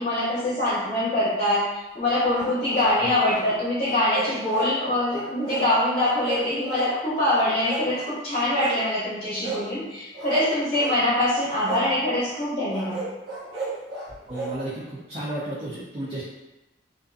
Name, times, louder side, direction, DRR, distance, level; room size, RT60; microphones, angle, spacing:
voice 1, 0.0-13.0, left 1 dB, 35° left, -9 dB, 0.7 m, -24 dB
sound 1, 2.3-3.5 3.8-4.7 5.1-5.7 6.0-6.9 7.3-8.1 8.5-8.8 9.4-9.6 10.1-11.0 11.6-11.9 12.7-14.5, right 3 dB, 75° right, 0.8 m, -33 dB
voice 2, 14.3-16.2, right 1 dB, 35° right, -8 dB, 0.5 m, -33 dB
2.5 x 2.5 x 2.3 m, 1.0 s
head